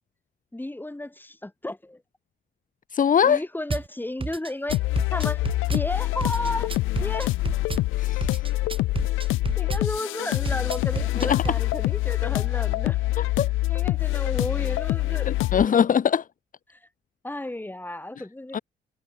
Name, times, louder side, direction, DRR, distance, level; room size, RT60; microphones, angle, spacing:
voice 1, 0.5-2.0 3.2-4.8 5.1-5.4 5.7-6.7 7.0-7.3 9.6-13.0 13.7-15.7 16.7-16.8 17.2-18.6, left 1 dB, 10° left, 3.9 m, -33 dB
voice 2, 2.9-3.4 8.0-8.4 11.2-11.4 13.2-13.5 15.3-16.2 18.5-18.6, left 8 dB, 40° left, 0.9 m, -22 dB
Drum kit / Bass drum, 3.7-3.9 4.2-5.9 6.2-7.9 8.2-9.9 10.3-11.6, right 4 dB, 25° right, 4.4 m, -31 dB
sound 1, 4.7-15.7, left 18 dB, 80° left, 0.4 m, -25 dB
cardioid pair, 90°, 20 cm